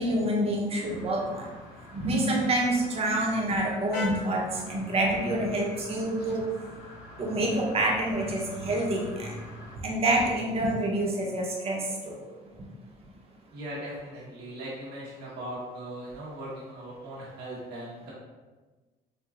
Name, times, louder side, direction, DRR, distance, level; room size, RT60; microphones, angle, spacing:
voice 1, 0.0-1.5 1.9-6.5 7.2-9.4 9.8-12.2, right 1 dB, 35° right, -2 dB, 0.8 m, -27 dB
sound 1, 0.7-9.8, left 2 dB, 75° left, 0.9 m, -43 dB
voice 2, 13.5-18.1, right 1 dB, 85° right, -6 dB, 1.2 m, -39 dB
4.6 x 2.2 x 2.4 m, 1.3 s
cardioid pair, 110°, 17 cm